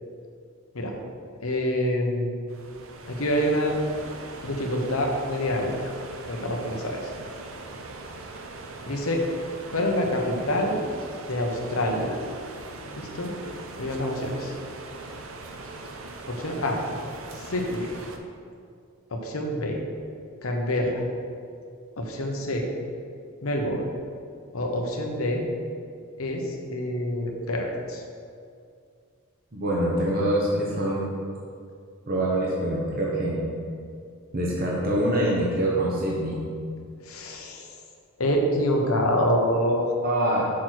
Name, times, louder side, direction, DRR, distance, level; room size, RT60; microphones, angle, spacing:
voice 1, 1.4-2.3 3.1-3.8 4.4-5.9 6.3-7.1 8.9-9.2 9.7-10.8 11.3-12.2 12.9-13.3 13.8-14.5 16.3-16.8 17.3-17.9 19.1-19.8 20.4-21.0 22.0-22.7 23.4-23.8 24.5-25.4 26.2-28.0 37.0-37.7 38.2-39.9, equal, 75° left, 1 dB, 1.0 m, -26 dB
sound 1, 2.5-18.2, right 2 dB, 70° right, 0.7 m, -41 dB
voice 2, 29.5-31.1 32.1-33.4 34.3-36.4 40.0-40.5, right 1 dB, 45° right, -4 dB, 1.0 m, -25 dB
6.1 x 4.5 x 6.1 m, 2.3 s
head